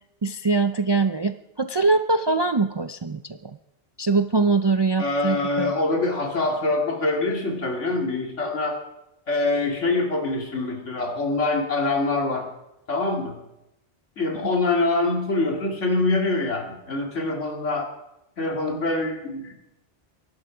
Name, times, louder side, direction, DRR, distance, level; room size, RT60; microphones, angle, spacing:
voice 1, 0.2-3.6 4.0-5.7 14.4-14.5, right 3 dB, 45° right, 10 dB, 0.3 m, -23 dB
voice 2, 5.0-8.8 9.3-12.5 12.9-13.4 14.2-17.9 18.4-19.5, left 2 dB, 85° left, 2 dB, 2.6 m, -24 dB
23.5 x 11.5 x 5.0 m, 0.89 s
omnidirectional pair, 1.2 m